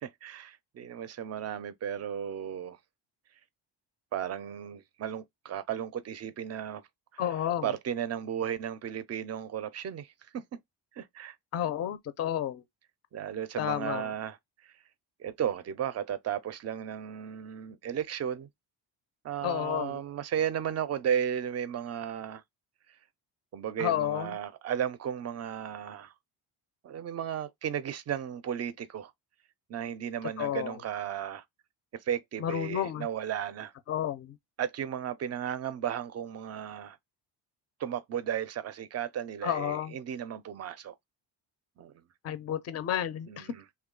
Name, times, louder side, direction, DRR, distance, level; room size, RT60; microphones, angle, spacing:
voice 1, 0.0-2.8 4.1-6.8 7.1-7.2 7.6-10.4 11.0-11.3 13.1-14.4 14.6-14.7 15.2-18.5 19.2-22.4 23.5-26.1 26.8-29.1 29.7-31.4 32.1-33.7 34.6-37.0 37.8-40.9 41.8-41.9 43.3-43.6, right 9 dB, 35° right, 0.4 m, -34 dB
voice 2, 7.2-7.7 11.5-12.6 13.6-14.1 19.4-20.0 23.8-24.3 30.4-30.7 32.4-33.1 33.9-34.3 39.4-39.9 42.2-43.5, left 11 dB, 35° left, 0.5 m, -31 dB
3.0 x 2.3 x 3.7 m
cardioid pair, 135°, 45 cm